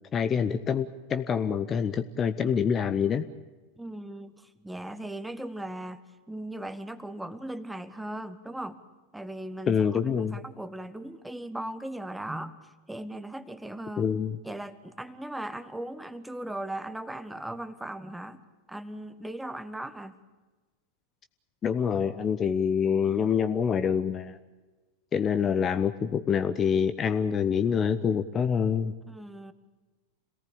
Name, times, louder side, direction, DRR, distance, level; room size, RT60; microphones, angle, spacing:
voice 1, 0.1-3.2 9.7-10.4 14.0-14.4 21.6-24.4 25.1-28.9, left 7 dB, 25° left, 11 dB, 0.9 m, -26 dB
voice 2, 3.8-6.0 6.3-8.8 9.1-14.1 14.4-20.2 29.1-29.5, right 1 dB, 5° right, 12 dB, 1.4 m, -38 dB
27.0 x 18.5 x 8.8 m, 1.3 s
figure-of-eight pair, 90°, 0 cm